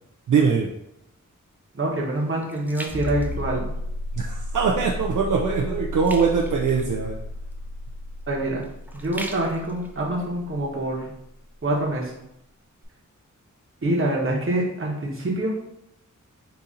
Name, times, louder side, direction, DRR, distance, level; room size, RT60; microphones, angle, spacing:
voice 1, 0.3-0.7 4.2-7.2, right 5 dB, 70° right, 0 dB, 0.5 m, -22 dB
sound 1, 0.9-4.1 4.6-4.9 5.2-11.2 11.7-11.8, right 1 dB, 5° right, 0.4 m, -43 dB
voice 2, 1.7-3.7 8.3-8.6 8.9-11.1 11.6-12.1 13.8-15.6, right 1 dB, 40° right, -3 dB, 1.1 m, -25 dB
sound 2, 2.9-11.3 12.8-12.9, left 1 dB, 20° right, 0.9 m, -33 dB
4.0 x 2.7 x 3.7 m, 0.81 s
wide cardioid pair, 95°, 31 cm